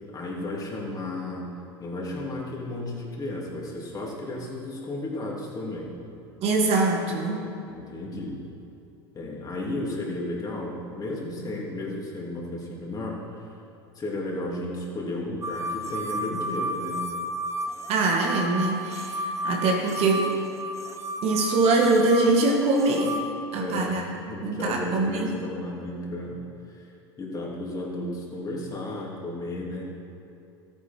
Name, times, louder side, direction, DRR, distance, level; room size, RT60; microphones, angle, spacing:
voice 1, 0.1-1.5 1.8-6.0 7.7-8.4 9.1-13.5 13.9-17.1 23.5-26.9 27.2-29.9, left 1 dB, 25° left, -3 dB, 3.2 m, -33 dB
voice 2, 6.4-7.5 17.9-20.3 21.2-23.2 23.5-24.0 24.4-25.3, right 3 dB, 45° right, 1 dB, 1.8 m, -23 dB
sound 1, 15.4-23.3, equal, 20° right, 0.9 m, -32 dB
14.0 x 9.0 x 4.6 m, 2.7 s
hypercardioid pair, 85°, 14 cm